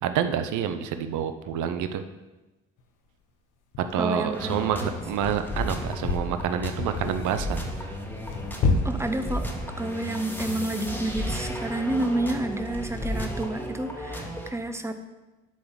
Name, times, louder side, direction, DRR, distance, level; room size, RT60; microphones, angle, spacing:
voice 1, 0.0-2.0 3.9-7.9, right 8 dB, 80° right, 9 dB, 0.7 m, -28 dB
sound 1, 2.8-2.9 3.7-3.9 4.7-8.8, left 4 dB, 85° left, 1.1 m, -30 dB
voice 2, 3.9-4.9 8.8-9.5 9.8-15.0, right 1 dB, 10° right, 8 dB, 0.8 m, -29 dB
sound 2, 4.3-14.5, equal, 5° left, 1.5 m, -34 dB
10.5 x 4.0 x 7.1 m, 1.1 s
cardioid pair, 90°, 30 cm